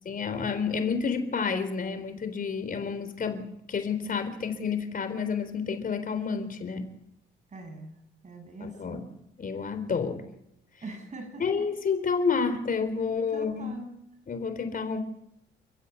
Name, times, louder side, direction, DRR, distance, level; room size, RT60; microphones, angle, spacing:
voice 1, 0.1-6.9 8.6-9.0 9.4-10.2 11.4-13.7 14.3-15.0, left 5 dB, 45° left, 9 dB, 4.0 m, -30 dB
voice 2, 7.5-7.9 8.2-9.0 10.8-11.4 13.3-14.0, right 2 dB, 35° right, 6 dB, 7.7 m, -42 dB
29.5 x 15.0 x 8.3 m, 0.79 s
cardioid pair, 90°, 20 cm